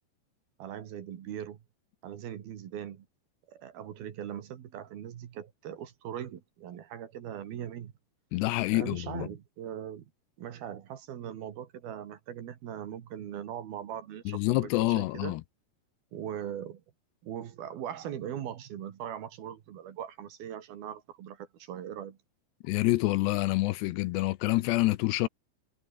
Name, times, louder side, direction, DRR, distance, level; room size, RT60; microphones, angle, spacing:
voice 1, 0.6-1.6 2.0-3.1 3.5-7.9 8.7-10.1 10.4-15.4 16.1-16.8 17.2-22.2, right 10 dB, 60° right, 3.5 m, -40 dB
voice 2, 8.3-9.3 14.3-15.4 22.6-25.3, left 19 dB, 80° left, 2.7 m, -27 dB
omnidirectional pair, 5.2 m